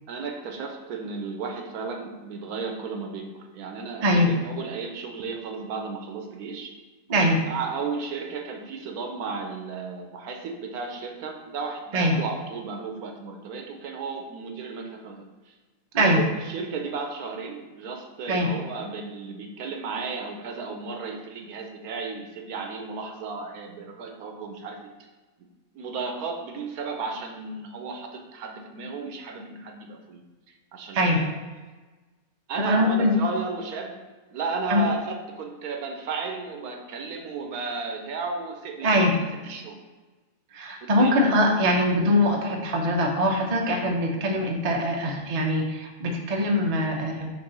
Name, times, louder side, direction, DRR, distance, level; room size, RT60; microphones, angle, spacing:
voice 1, 0.1-6.7 7.4-15.5 16.0-24.9 25.4-25.5 25.7-31.3 32.5-33.9 34.3-39.8 40.8-41.2, right 4 dB, 80° right, 3 dB, 1.2 m, -34 dB
voice 2, 32.6-33.1 34.7-34.8 38.8-39.1 40.5-47.3, equal, 35° right, 1 dB, 0.6 m, -22 dB
6.7 x 2.7 x 5.4 m, 1.3 s
omnidirectional pair, 1.6 m